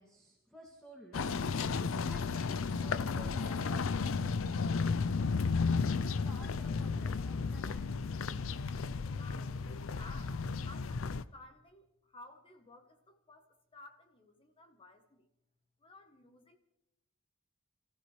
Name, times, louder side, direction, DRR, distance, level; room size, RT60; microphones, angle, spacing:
voice 1, 0.0-1.4 2.0-2.5 2.8-4.4 5.7-8.4, right 1 dB, 5° left, 2.3 m, -54 dB
sound 1, 1.1-11.2, left 4 dB, 70° left, 0.5 m, -33 dB
voice 2, 9.0-10.4 10.7-11.8 12.1-13.5 13.7-15.2 15.8-16.6, left 2 dB, 25° left, 1.1 m, -55 dB
28.0 x 15.0 x 3.3 m
head